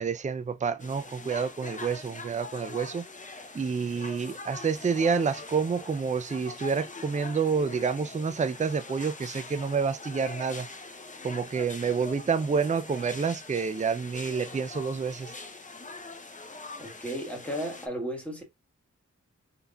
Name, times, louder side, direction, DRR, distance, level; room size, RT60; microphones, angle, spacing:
voice 1, 0.0-3.0 3.5-10.7 11.2-15.3, right 5 dB, 25° right, 0.4 m, -28 dB
sound 1, 0.8-17.9, left 3 dB, 25° left, 0.7 m, -43 dB
voice 2, 16.8-18.4, equal, 5° left, 1.7 m, -34 dB
3.9 x 3.4 x 2.2 m
wide cardioid pair, 80°, 29 cm